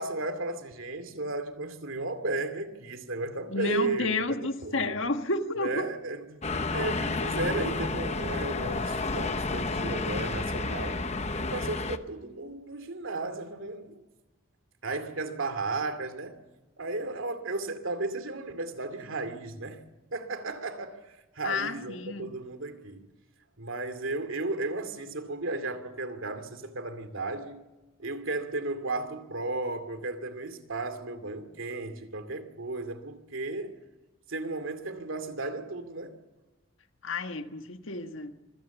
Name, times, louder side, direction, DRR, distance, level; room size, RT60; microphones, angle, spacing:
voice 1, 0.0-5.0 5.6-6.4 6.7-11.0 11.4-14.0 14.8-16.4 16.8-19.8 20.1-23.1 23.6-27.6 28.0-33.7 34.3-36.2, right 2 dB, 75° right, 2.4 m, -34 dB
voice 2, 3.5-5.9 21.4-22.3 37.0-38.3, left 3 dB, 70° left, 1.6 m, -31 dB
sound 1, 6.4-12.0, left 3 dB, 30° left, 0.9 m, -31 dB
25.5 x 17.0 x 7.1 m
head